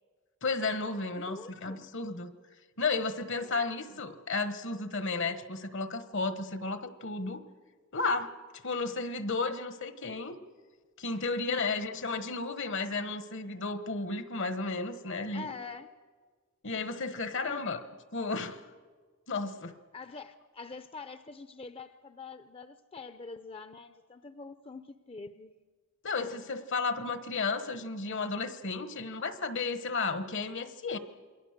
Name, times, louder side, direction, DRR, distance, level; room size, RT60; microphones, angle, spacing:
voice 1, 0.4-2.3 2.8-7.4 7.9-8.4 8.6-10.4 11.0-15.5 16.6-17.8 18.1-18.6 19.3-19.7 26.0-31.0, left 3 dB, 65° left, 11 dB, 1.3 m, -33 dB
voice 2, 1.2-1.9 3.4-3.6 3.9-4.0 11.5-11.8 15.3-15.9 17.4-17.7 19.9-25.5, left 4 dB, 30° left, 11 dB, 0.6 m, -45 dB
28.0 x 21.5 x 6.7 m, 1.5 s
head